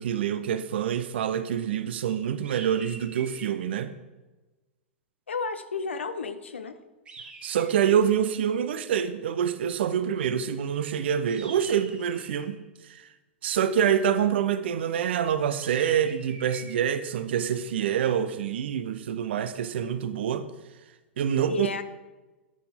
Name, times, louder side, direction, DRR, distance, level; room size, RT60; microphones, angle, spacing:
voice 1, 0.0-3.9 7.4-12.6 12.8-13.0 13.4-20.5 21.2-21.7, right 8 dB, 65° right, 0.6 m, -26 dB
sound 1, 2.4-3.6 7.1-8.1 11.3-12.6 15.6-16.8, right 3 dB, 20° right, 1.6 m, -45 dB
voice 2, 5.3-6.7 21.5-21.8, left 4 dB, 80° left, 0.7 m, -32 dB
12.0 x 5.9 x 3.6 m
figure-of-eight pair, 100°, 6 cm